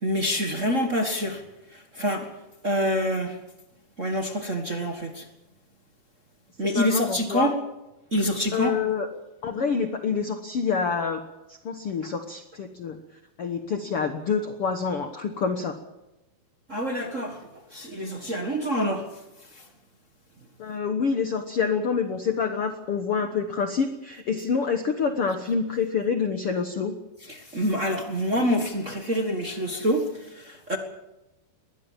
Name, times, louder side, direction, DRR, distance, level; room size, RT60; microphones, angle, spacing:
voice 1, 0.0-1.4 1.7-2.3 2.6-3.4 4.0-5.2 6.6-7.5 8.1-8.7 16.7-17.4 17.7-19.1 27.3-30.8, equal, 55° right, 4 dB, 0.8 m, -26 dB
voice 2, 6.6-7.5 8.5-9.1 9.4-11.2 11.5-13.0 13.4-15.8 20.6-26.9, left 5 dB, 65° left, 7 dB, 1.4 m, -27 dB
22.0 x 17.5 x 7.5 m, 0.96 s
omnidirectional pair, 4.4 m